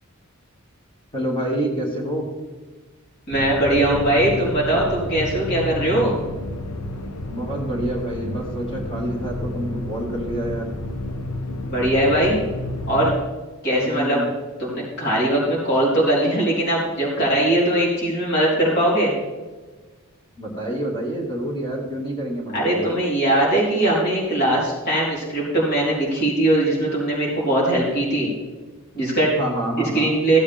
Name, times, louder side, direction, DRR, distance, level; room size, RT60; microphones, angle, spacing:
voice 1, 1.1-2.3 7.3-10.7 13.7-14.2 20.4-23.0 29.4-30.1, right 1 dB, 25° left, -2 dB, 2.2 m, -27 dB
sound 1, 3.3-13.2, left 1 dB, 85° left, 1.0 m, -30 dB
voice 2, 3.3-6.2 11.7-12.4 12.9-13.1 13.6-14.2 14.6-19.1 22.5-28.3 28.9-29.4 29.9-30.4, right 1 dB, 50° left, -6 dB, 4.1 m, -20 dB
16.0 x 8.4 x 3.6 m, 1.3 s
head